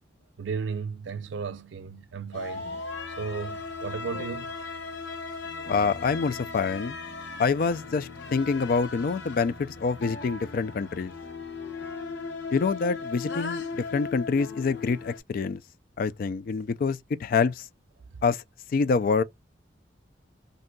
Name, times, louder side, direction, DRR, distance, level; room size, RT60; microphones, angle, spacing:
voice 1, 0.4-4.5 11.8-11.9, right 5 dB, 85° right, 0.4 m, -35 dB
sound 1, 2.3-15.2, left 4 dB, 75° left, 0.7 m, -37 dB
voice 2, 5.7-7.0 7.4-11.1 12.5-15.6 16.0-17.7 18.2-18.4 18.7-19.2, left 5 dB, 50° left, 0.3 m, -26 dB
2.6 x 2.2 x 3.7 m
head